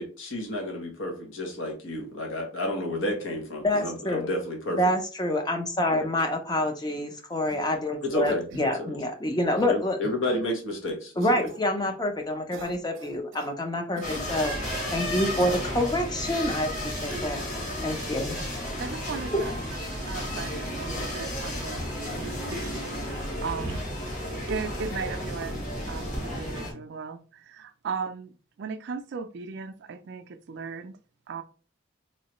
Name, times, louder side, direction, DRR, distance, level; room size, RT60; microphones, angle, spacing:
voice 1, 0.0-4.8 5.9-6.1 8.0-8.5 8.8-8.9 9.7-11.2, left 1 dB, 70° left, 1.0 m, -31 dB
voice 2, 3.6-4.3 4.8-10.0 11.2-14.5 14.9-17.4 17.8-18.3, left 1 dB, 20° left, 0.5 m, -27 dB
sound 1, 7.5-7.7 8.2-8.7 9.3-9.7 10.0-10.4 11.2-11.6 12.5-13.5 13.9-15.0 15.4-16.0 16.5-16.7 17.0-17.2 18.0-18.1 18.8-18.9 19.1-19.2 19.7-19.8 20.4-20.5 20.7-20.8 21.6-21.7 22.5-22.9 23.5-24.1 24.5-24.9 25.4-25.5, right 2 dB, 85° right, 0.7 m, -42 dB
sound 2, 14.0-26.7, equal, 40° left, 1.4 m, -33 dB
voice 3, 18.8-19.5 19.8-23.8 24.5-28.3 28.6-31.0 31.3-31.4, right 5 dB, 55° right, 0.4 m, -37 dB
3.1 x 3.0 x 2.9 m
head